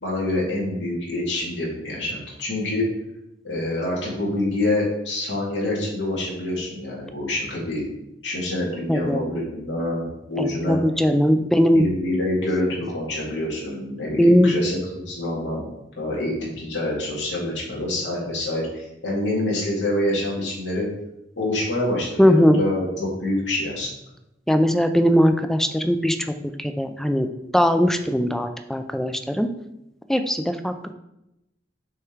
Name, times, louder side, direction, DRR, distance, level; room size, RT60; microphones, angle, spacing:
voice 1, 0.0-2.9 3.4-7.8 8.2-10.8 11.7-15.6 16.0-20.9 21.4-23.9, left 1 dB, 75° left, -5 dB, 2.4 m, -26 dB
voice 2, 8.9-9.2 10.4-11.9 14.2-14.5 22.2-22.6 24.5-26.2 26.6-27.3 27.5-29.5 30.1-30.7, equal, ahead, 8 dB, 0.4 m, -19 dB
6.4 x 3.6 x 4.6 m, 0.88 s
head